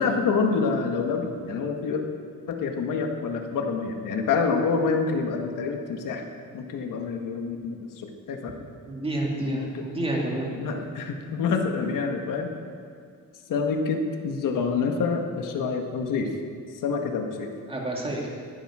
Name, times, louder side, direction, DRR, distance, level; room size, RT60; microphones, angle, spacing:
voice 1, 0.0-2.0 2.5-6.2 6.5-8.5 9.4-9.8 10.6-12.6 13.5-16.3 16.7-17.5, left 5 dB, 70° left, 3 dB, 1.6 m, -27 dB
voice 2, 8.9-10.5 17.7-18.3, right 1 dB, 15° right, -2 dB, 2.3 m, -29 dB
19.5 x 12.0 x 4.9 m, 2.2 s
cardioid pair, 180°, 33 cm